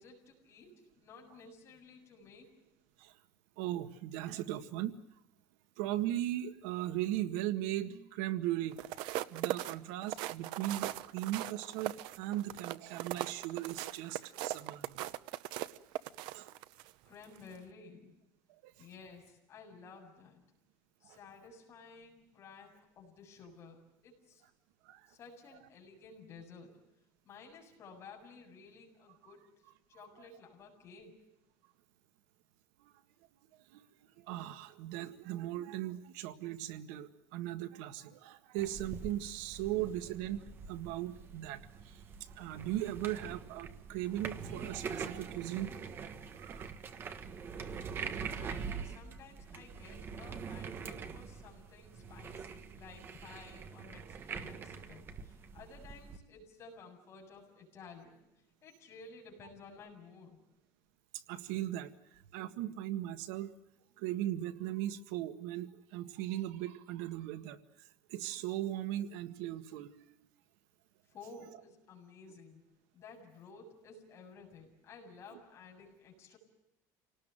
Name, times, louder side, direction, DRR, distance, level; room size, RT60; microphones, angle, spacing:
voice 1, 0.0-2.5 17.0-18.1 18.8-20.4 21.0-24.4 25.1-26.7 27.2-29.4 29.9-31.1 47.6-58.2 58.6-60.4 71.1-72.6 72.9-76.4, left 4 dB, 30° left, 0 dB, 7.5 m, -54 dB
voice 2, 3.6-5.0 5.8-8.8 9.3-15.0 16.3-16.5 18.6-18.7 21.0-21.2 24.9-25.0 32.8-32.9 33.7-33.8 34.2-42.0 42.4-46.1 46.3-46.8 61.3-63.5 64.0-67.6 68.1-70.2, right 13 dB, 80° right, 10 dB, 1.8 m, -38 dB
sound 1, 8.7-16.9 17.4-17.6, right 16 dB, 60° right, 0.9 m, -39 dB
sound 2, 38.6-56.2, right 6 dB, 25° right, 1.4 m, -44 dB
28.5 x 19.0 x 9.1 m, 0.86 s
cardioid pair, 175°, 9 cm